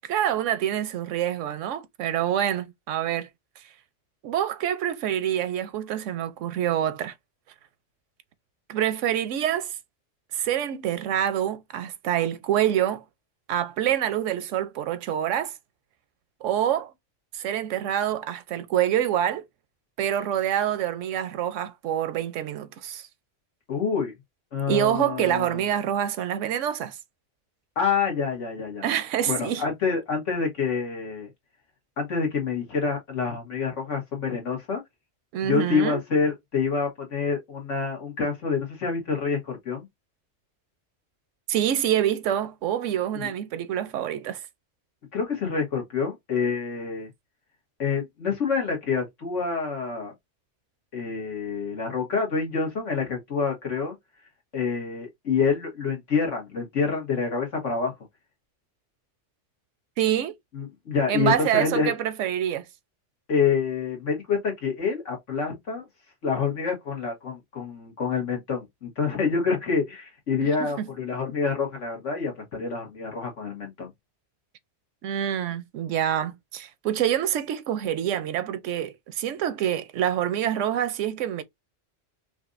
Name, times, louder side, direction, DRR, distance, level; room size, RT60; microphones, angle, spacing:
voice 1, 0.1-3.3 4.2-7.1 8.7-9.8 10.3-13.0 13.5-15.5 16.4-16.9 17.3-19.4 20.0-23.1 24.7-27.0 28.8-29.6 35.3-36.0 41.5-44.4 60.0-60.3 61.1-62.6 70.8-70.9 75.0-81.4, right 10 dB, 85° right, 1.0 m, -26 dB
voice 2, 23.7-24.1 24.5-25.6 27.8-28.8 29.3-31.3 32.0-34.8 35.4-39.9 43.1-43.3 45.1-47.1 47.8-50.1 50.9-54.0 54.5-57.9 60.5-61.9 63.3-65.8 66.2-73.9, left 5 dB, 80° left, 1.8 m, -27 dB
5.1 x 2.5 x 2.5 m
omnidirectional pair, 1.2 m